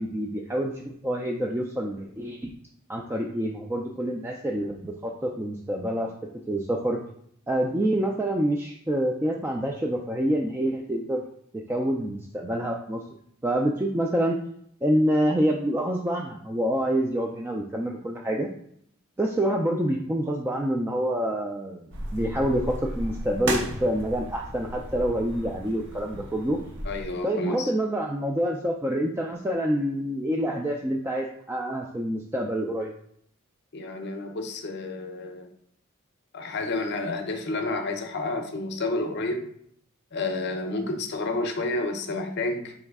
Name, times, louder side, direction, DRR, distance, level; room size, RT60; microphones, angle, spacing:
voice 1, 0.0-2.4 2.9-6.1 6.5-7.0 7.5-11.2 11.5-13.0 13.4-14.4 14.8-18.5 19.2-26.6 27.2-32.9, right 1 dB, 10° right, 0 dB, 0.3 m, -27 dB
sound 1, 21.9-27.1, right 1 dB, 60° right, 0.9 m, -34 dB
voice 2, 26.8-27.7 33.7-35.5 36.3-39.4 40.1-42.7, left 2 dB, 55° left, 5 dB, 0.6 m, -30 dB
4.7 x 3.1 x 3.5 m, 0.68 s
head